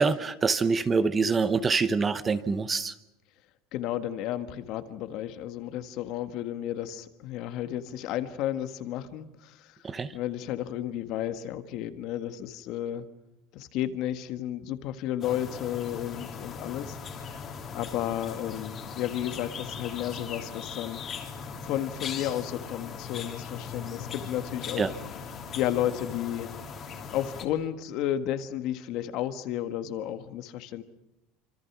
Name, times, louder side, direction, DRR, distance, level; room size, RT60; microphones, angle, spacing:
voice 1, 0.0-2.9 9.8-10.1 24.8-24.9, right 4 dB, 15° right, 13 dB, 0.8 m, -25 dB
voice 2, 3.7-9.8 10.1-13.0 13.5-17.3 17.7-21.0 21.6-24.8 25.5-26.5 27.1-30.8, left 11 dB, 50° left, 10 dB, 1.6 m, -32 dB
sound 1, 15.2-27.5, left 6 dB, 30° left, 2.9 m, -39 dB
27.0 x 26.0 x 6.1 m, 0.90 s
cardioid pair, 165°, 0 cm